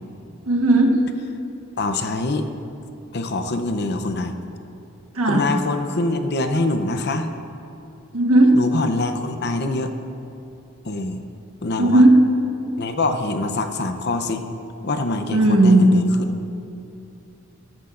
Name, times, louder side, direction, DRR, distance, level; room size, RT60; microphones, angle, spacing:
voice 1, 0.5-0.9 5.2-5.4 8.1-8.5 11.8-12.1 15.3-15.9, right 2 dB, 90° right, 1 dB, 1.4 m, -15 dB
voice 2, 1.8-2.5 3.1-4.3 5.3-7.3 8.5-9.9 10.8-11.2 11.6-12.0 12.8-14.4 14.8-16.3, left 2 dB, 50° left, 7 dB, 0.7 m, -24 dB
14.0 x 13.5 x 2.5 m, 2.8 s
head